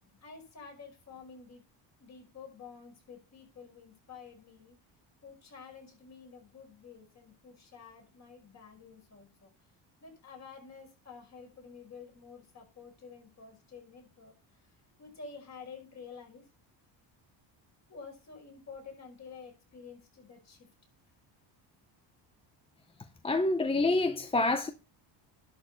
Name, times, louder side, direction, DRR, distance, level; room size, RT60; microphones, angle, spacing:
voice 1, 0.0-1.6 2.0-4.8 5.2-9.5 10.0-16.5 17.9-20.7, left 5 dB, 35° left, 5.5 m, -50 dB
voice 2, 23.2-24.7, left 2 dB, 15° left, 0.6 m, -27 dB
11.5 x 6.6 x 4.3 m
cardioid pair, 150°, 46 cm